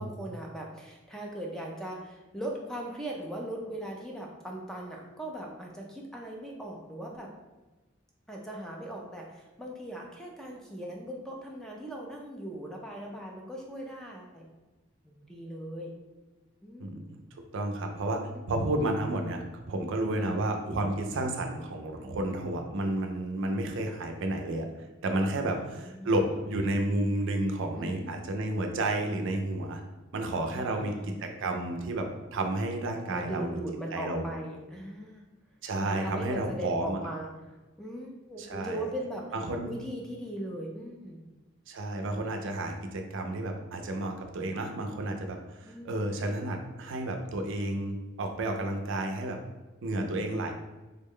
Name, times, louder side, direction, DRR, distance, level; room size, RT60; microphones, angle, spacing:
voice 1, 0.0-7.3 8.3-14.5 15.0-15.9 16.6-16.9 18.3-18.4 20.1-20.4 25.4-26.4 27.7-28.5 30.5-31.1 33.1-35.2 35.8-37.3 37.8-39.3 39.7-41.3 45.6-45.9 49.8-50.2, right 1 dB, 5° left, -1 dB, 0.4 m, -39 dB
voice 2, 16.8-17.2 17.5-18.2 18.5-24.7 25.0-29.8 30.1-30.9 31.2-32.0 32.3-33.6 33.9-34.2 35.6-37.0 38.4-38.9 39.3-39.7 41.7-49.4 49.8-50.5, right 1 dB, 60° right, 4 dB, 0.4 m, -31 dB
3.5 x 2.1 x 3.6 m, 1.1 s
head